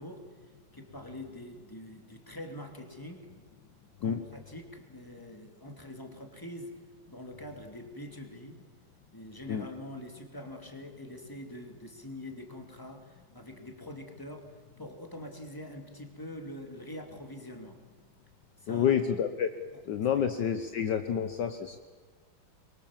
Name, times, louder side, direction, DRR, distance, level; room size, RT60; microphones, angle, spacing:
voice 1, 0.0-3.3 4.0-6.8 7.1-8.6 9.1-17.8 18.6-18.9 20.1-20.2, left 1 dB, 10° left, 4 dB, 2.5 m, -44 dB
voice 2, 18.7-19.5 19.8-21.8, left 8 dB, 65° left, 8 dB, 1.5 m, -29 dB
24.0 x 23.5 x 7.4 m, 1.4 s
omnidirectional pair, 2.2 m